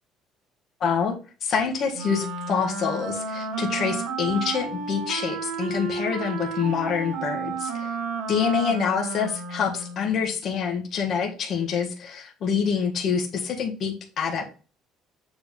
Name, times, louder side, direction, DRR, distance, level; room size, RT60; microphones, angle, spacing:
voice 1, 0.8-7.9 8.3-14.5, left 6 dB, 45° left, 2 dB, 1.6 m, -26 dB
Wind instrument woodwind instrument, 1.9-10.2, right 4 dB, 70° right, 2.3 m, -32 dB
7.3 x 3.7 x 5.4 m, 0.36 s
cardioid pair, 140°, 0 cm